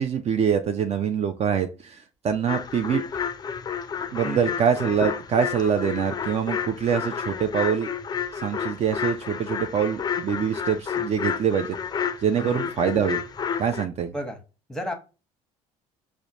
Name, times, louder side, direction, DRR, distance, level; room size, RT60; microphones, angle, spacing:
voice 1, 0.0-3.0 4.1-7.9 8.4-11.7 12.2-13.2 13.6-14.1, right 7 dB, 45° right, 0.4 m, -24 dB
sound 1, 2.5-13.9, left 7 dB, 25° left, 0.4 m, -31 dB
voice 2, 4.2-4.5 12.4-12.7 14.1-14.4 14.7-14.9, equal, 5° left, 1.0 m, -32 dB
4.9 x 2.1 x 2.8 m
supercardioid pair, 80°, 16 cm